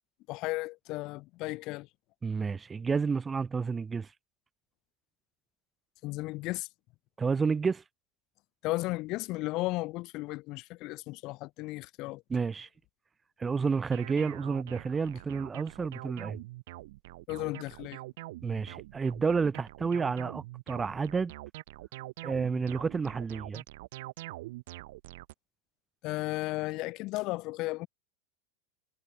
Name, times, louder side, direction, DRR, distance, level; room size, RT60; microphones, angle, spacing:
voice 1, 0.3-1.9 6.0-6.7 8.6-12.2 17.3-18.0 26.0-27.9, left 21 dB, 45° left, 0.6 m, -34 dB
voice 2, 2.2-4.1 7.2-7.8 12.3-12.7 13.4-16.4 18.4-21.3 22.2-23.6, right 5 dB, 15° right, 0.4 m, -30 dB
sound 1, 13.9-25.3, right 19 dB, 55° right, 0.6 m, -44 dB
figure-of-eight pair, 85°, 0 cm